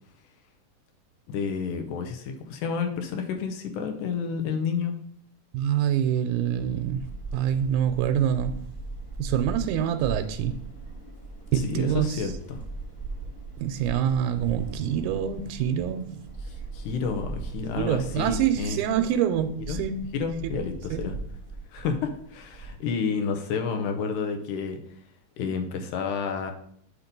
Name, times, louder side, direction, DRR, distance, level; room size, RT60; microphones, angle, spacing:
voice 1, 1.3-4.9 11.6-12.6 16.7-18.8 19.7-19.8 20.1-21.2 21.7-24.8 25.4-26.5, left 5 dB, 80° left, 5 dB, 2.2 m, -30 dB
voice 2, 5.5-8.6 9.2-10.6 11.5-12.3 13.6-16.3 17.8-20.1 20.4-20.5 20.9-21.0, right 9 dB, 85° right, 7 dB, 2.1 m, -26 dB
sound 1, 6.5-22.8, right 3 dB, 5° left, 0.8 m, -39 dB
8.1 x 2.9 x 5.2 m, 0.63 s
omnidirectional pair, 3.6 m